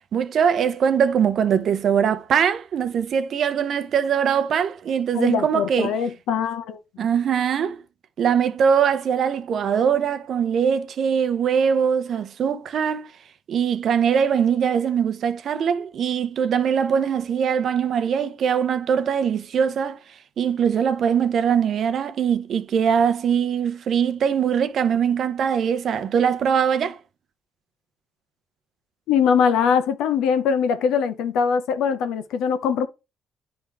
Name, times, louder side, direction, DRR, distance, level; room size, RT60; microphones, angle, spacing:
voice 1, 0.1-6.0 7.0-7.8 8.2-13.1 13.5-20.0 20.4-27.0, right 7 dB, 65° right, 0.7 m, -22 dB
voice 2, 5.1-6.8 29.1-32.9, left 7 dB, 90° left, 0.8 m, -22 dB
9.9 x 3.5 x 3.3 m
cardioid pair, 90°, 0 cm